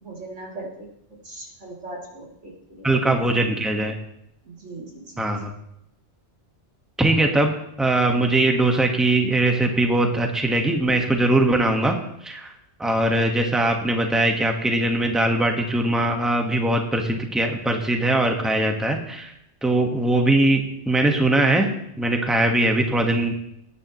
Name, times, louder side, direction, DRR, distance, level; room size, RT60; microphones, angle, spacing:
voice 1, 0.0-0.9 1.2-3.0 4.4-5.2, right 2 dB, 90° right, -2 dB, 3.5 m, -39 dB
voice 2, 2.8-4.0 5.2-5.5 7.0-12.5 12.8-19.3 19.6-23.4, right 2 dB, ahead, 3 dB, 1.4 m, -21 dB
20.5 x 10.0 x 3.1 m, 0.78 s
omnidirectional pair, 1.2 m